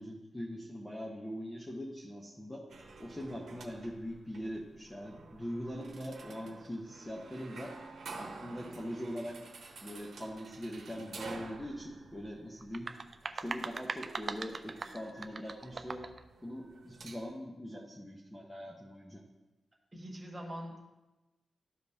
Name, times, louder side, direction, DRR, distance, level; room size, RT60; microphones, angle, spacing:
voice 1, 0.0-2.6 3.0-7.7 8.2-9.4 9.8-12.9 13.3-16.0 16.4-19.2, equal, 10° left, -3 dB, 0.8 m, -42 dB
sound 1, 2.7-17.3, right 3 dB, 70° right, 1.0 m, -50 dB
sound 2, 12.6-16.2, right 4 dB, 35° right, 0.3 m, -41 dB
voice 2, 19.9-20.8, equal, 20° right, -2 dB, 1.4 m, -43 dB
13.0 x 5.1 x 2.7 m, 1.1 s
wide cardioid pair, 170°, 0 cm